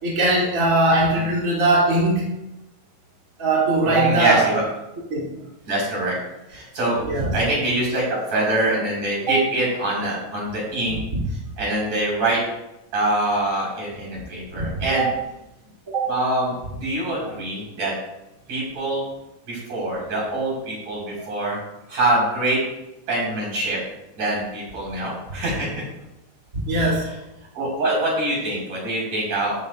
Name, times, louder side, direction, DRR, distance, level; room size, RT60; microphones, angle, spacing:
voice 1, 0.0-2.3 3.4-4.5 5.1-5.4 7.1-7.3 9.3-9.4 11.1-11.2 14.6-15.1 15.9-16.1 26.7-27.1, right 2 dB, 25° right, -5 dB, 3.4 m, -20 dB
voice 2, 3.8-4.6 5.7-6.2 6.5-7.0 7.3-11.0 11.6-12.4 12.9-15.1 16.1-17.9 18.5-19.0 19.5-21.6 21.9-22.6 23.1-23.8 24.2-25.8 27.0-27.1 27.5-29.6, right 1 dB, 70° right, -5 dB, 6.7 m, -24 dB
14.0 x 13.0 x 2.6 m, 0.90 s
omnidirectional pair, 3.6 m